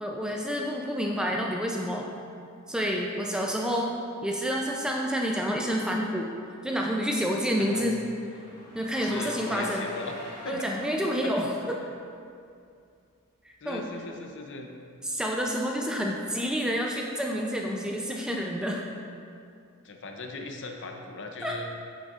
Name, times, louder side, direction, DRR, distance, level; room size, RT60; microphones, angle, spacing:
voice 1, 0.0-2.1 2.7-3.9 4.2-6.3 6.6-8.0 8.7-9.8 10.5-11.5 13.4-13.8 15.0-18.8 21.4-21.7, equal, 5° right, -1 dB, 0.4 m, -29 dB
Car / Engine, 6.3-11.3, left 1 dB, 20° left, 1.4 m, -46 dB
voice 2, 7.6-7.9 9.0-10.7 11.0-11.3 13.6-14.7 19.8-21.7, left 3 dB, 55° left, 3 dB, 0.6 m, -39 dB
8.4 x 6.3 x 2.5 m, 2.4 s
head